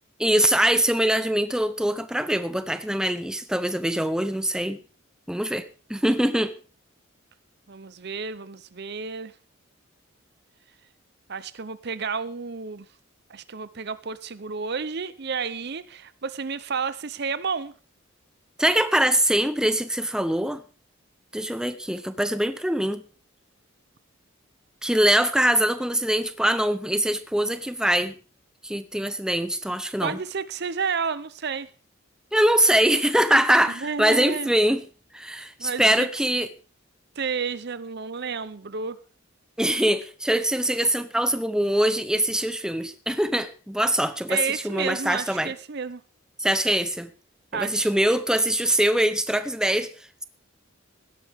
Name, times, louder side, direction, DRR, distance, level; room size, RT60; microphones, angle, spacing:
voice 1, 0.2-4.8 5.3-6.6 18.6-20.6 21.3-23.0 24.8-28.1 28.6-30.2 32.3-34.8 35.1-36.5 39.6-45.5 46.4-47.1 47.5-49.9, right 1 dB, 5° right, 0.7 m, -23 dB
voice 2, 7.7-9.3 11.3-12.9 13.3-17.7 30.0-31.7 33.8-34.5 35.6-36.1 37.2-39.0 44.3-46.0 47.5-47.9, right 5 dB, 50° right, 0.7 m, -31 dB
16.5 x 12.5 x 3.6 m
head